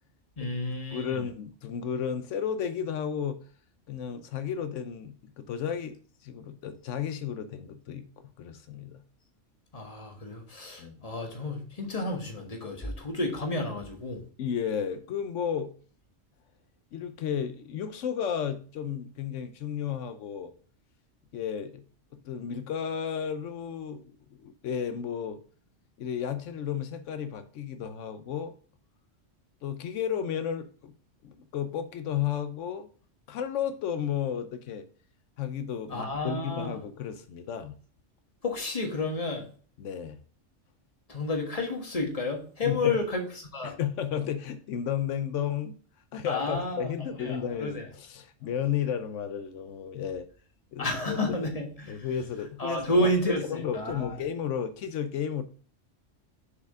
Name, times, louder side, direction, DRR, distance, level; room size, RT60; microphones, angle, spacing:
voice 1, 0.4-1.3 9.7-14.2 35.9-36.8 38.4-39.5 41.1-43.8 46.2-47.9 50.8-52.1 52.6-54.2, left 2 dB, 30° left, 1.5 m, -31 dB
voice 2, 0.9-3.4 3.9-6.0 6.2-8.0 8.4-9.0 10.8-11.0 14.4-15.7 16.9-20.5 21.3-21.8 22.2-24.1 24.4-25.4 26.0-28.5 29.6-30.9 31.2-32.9 33.3-34.9 35.4-37.7 39.8-40.2 42.7-43.0 43.6-45.8 46.1-50.3 50.7-51.4 51.9-55.4, left 8 dB, 85° left, 1.0 m, -33 dB
6.9 x 4.8 x 3.5 m
omnidirectional pair, 1.3 m